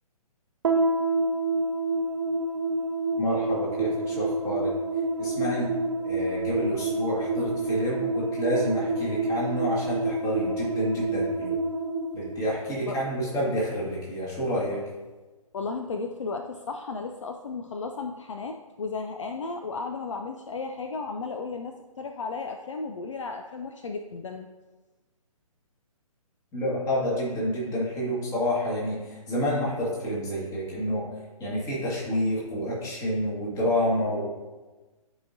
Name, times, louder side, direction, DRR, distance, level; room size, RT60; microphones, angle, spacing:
sound 1, 0.6-13.2, right 2 dB, 50° right, 0.8 m, -28 dB
voice 1, 3.2-4.7 5.2-5.7 6.1-11.5 12.1-14.8 26.5-31.1 31.4-34.4, equal, 20° left, -6 dB, 2.0 m, -28 dB
voice 2, 15.5-24.5, left 4 dB, 55° left, 5 dB, 0.5 m, -34 dB
11.0 x 4.9 x 2.7 m, 1.2 s
figure-of-eight pair, 135°, 19 cm